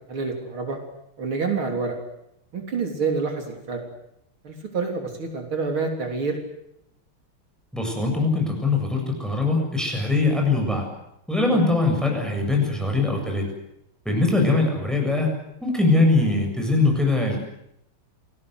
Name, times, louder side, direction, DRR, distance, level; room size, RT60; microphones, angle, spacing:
voice 1, 0.1-0.8 1.2-2.0 2.5-3.8 4.4-6.4 11.5-11.6, right 4 dB, 70° right, 3 dB, 4.2 m, -27 dB
voice 2, 7.7-10.9 11.3-13.5 14.1-15.3 15.6-17.4, left 3 dB, ahead, 2 dB, 7.4 m, -22 dB
29.0 x 20.0 x 8.1 m, 0.80 s
omnidirectional pair, 2.3 m